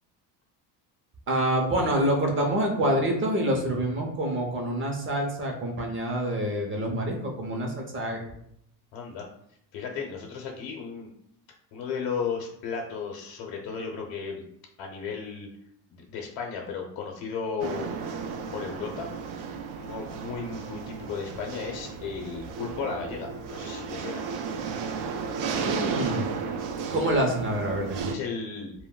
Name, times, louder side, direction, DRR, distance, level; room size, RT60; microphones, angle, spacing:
voice 1, 1.3-8.3 25.6-26.3 26.9-28.1, right 1 dB, 25° right, 1 dB, 0.6 m, -27 dB
voice 2, 8.9-9.3 9.7-11.1 11.7-14.4 14.8-15.5 15.9-17.9 18.5-19.1 19.7-24.2 28.1-28.7, left 5 dB, 80° left, 1 dB, 0.8 m, -34 dB
sound 1, 17.6-28.2, right 5 dB, 70° right, 0.5 m, -34 dB
2.2 x 2.1 x 3.6 m, 0.71 s
cardioid pair, 125°, 49 cm